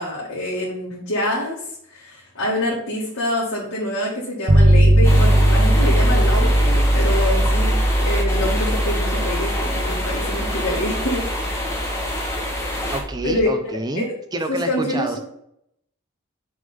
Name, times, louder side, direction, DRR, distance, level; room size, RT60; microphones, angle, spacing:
voice 1, 0.0-1.6 1.9-11.7 13.2-13.5 14.0-14.1 14.5-15.2, left 1 dB, 70° left, -7 dB, 2.0 m, -26 dB
sound 1, 4.5-13.4, right 1 dB, 65° right, 1.0 m, -19 dB
sound 2, 5.0-13.0, left 1 dB, 15° left, 1.2 m, -27 dB
voice 2, 12.9-14.1 14.3-15.2, right 1 dB, 20° right, 6 dB, 0.5 m, -27 dB
6.3 x 3.7 x 5.4 m, 0.75 s
head